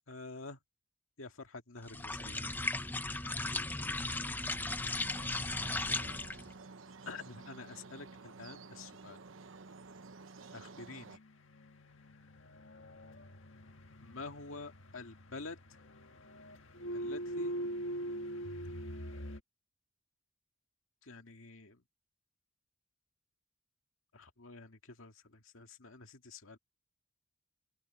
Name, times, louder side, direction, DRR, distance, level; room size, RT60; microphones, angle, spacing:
voice 1, 0.1-0.6 1.2-2.5 5.9-6.2 7.1-9.2 10.5-11.2 14.0-15.8 16.9-17.6 21.0-21.8 24.1-26.6, left 3 dB, 90° left, 2.1 m, -48 dB
sound 1, 1.9-6.5, left 2 dB, 10° left, 0.6 m, -36 dB
sound 2, 5.0-11.2, right 4 dB, 80° right, 1.0 m, -52 dB
sound 3, 11.1-19.4, equal, 75° left, 1.6 m, -43 dB
open air
head